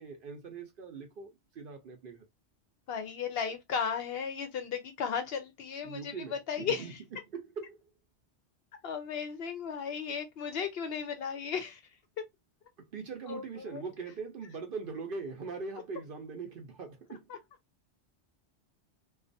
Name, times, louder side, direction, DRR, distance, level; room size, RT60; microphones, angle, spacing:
voice 1, 0.0-2.2 5.8-6.9 7.3-7.8 12.8-17.3, right 4 dB, 55° right, 0.7 m, -41 dB
voice 2, 2.9-7.0 8.8-11.8 12.2-12.3 13.3-13.8 17.3-17.4, left 6 dB, 65° left, 0.7 m, -35 dB
2.4 x 2.3 x 2.5 m
omnidirectional pair, 1.2 m